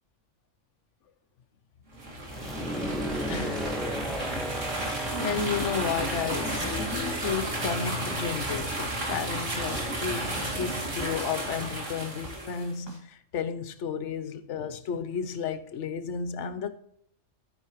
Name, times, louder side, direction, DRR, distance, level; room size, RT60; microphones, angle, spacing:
sound 1, 1.9-12.7, right 1 dB, 85° right, 3.0 m, -33 dB
sound 2, 2.3-8.0, equal, ahead, 1.3 m, -35 dB
voice 1, 3.3-3.7 4.8-16.7, left 6 dB, 75° left, 1.1 m, -33 dB
sound 3, 5.0-11.7 12.2-12.3 12.9-13.0, equal, 20° left, 2.7 m, -40 dB
13.0 x 9.3 x 3.1 m
omnidirectional pair, 1.3 m